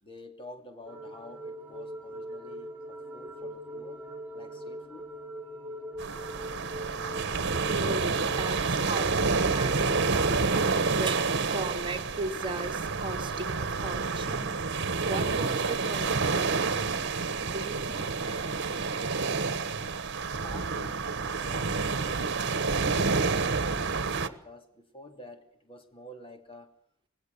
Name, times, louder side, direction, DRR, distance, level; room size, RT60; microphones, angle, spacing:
voice 1, 0.0-4.0 4.3-5.1 20.4-23.8 24.1-26.7, left 1 dB, 25° left, 6 dB, 2.9 m, -49 dB
sound 1, 0.9-10.9, equal, 10° right, 6.4 m, -41 dB
sound 2, 6.0-24.3, right 4 dB, 60° right, 1.4 m, -29 dB
voice 2, 7.5-10.4 10.9-14.6 15.1-16.6 17.0-17.1 17.4-19.0, right 2 dB, 25° right, 3 dB, 2.2 m, -37 dB
25.0 x 19.0 x 6.9 m, 0.65 s
head